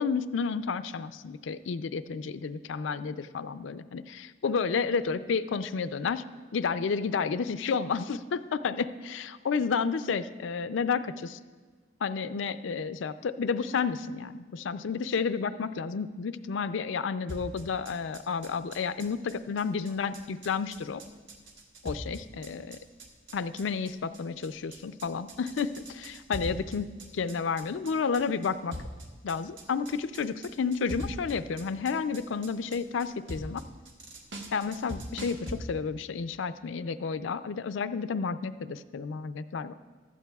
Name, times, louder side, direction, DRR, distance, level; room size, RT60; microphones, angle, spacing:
voice 1, 0.0-6.2 6.5-11.4 12.0-21.0 21.8-22.8 23.3-26.9 27.2-28.7 29.2-33.6 34.5-39.7, left 5 dB, 85° left, 12 dB, 0.4 m, -31 dB
sound 1, 17.3-35.6, equal, 75° right, 1.4 m, -42 dB
15.5 x 12.0 x 2.3 m, 1.5 s
head